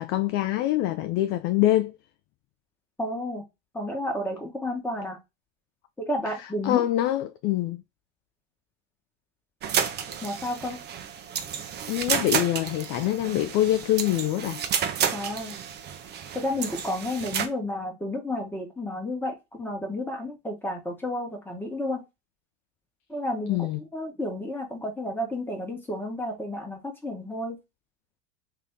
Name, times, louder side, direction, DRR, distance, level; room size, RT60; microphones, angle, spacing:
voice 1, 0.0-2.0 6.6-7.8 11.9-14.6 23.5-23.8, left 14 dB, 40° left, 0.4 m, -25 dB
voice 2, 3.0-3.4 3.7-5.2 6.0-6.8 10.2-10.8 15.1-15.5 16.3-22.0 23.1-27.6, left 1 dB, 5° left, 1.4 m, -31 dB
sound 1, 9.6-17.5, right 8 dB, 30° right, 0.7 m, -31 dB
3.3 x 2.8 x 3.6 m
hypercardioid pair, 95°, 36 cm